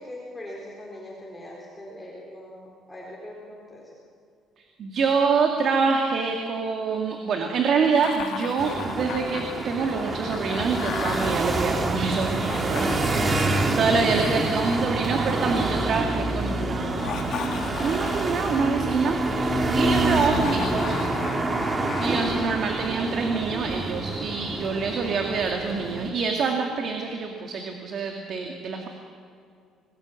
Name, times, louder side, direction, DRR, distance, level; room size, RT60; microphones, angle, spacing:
voice 1, 0.0-4.0, left 1 dB, 5° left, -4 dB, 4.0 m, -41 dB
voice 2, 4.8-13.5 13.8-17.5 17.8-21.2 22.0-28.9, right 5 dB, 40° right, 3 dB, 2.2 m, -26 dB
Laughter, 7.9-11.3 12.3-15.6 16.8-18.9 20.0-22.9, left 8 dB, 55° left, 1.6 m, -37 dB
sound 1, 8.6-26.1, right 2 dB, 20° right, 1.8 m, -27 dB
26.5 x 19.0 x 8.5 m, 2.3 s
cardioid pair, 175°, 0 cm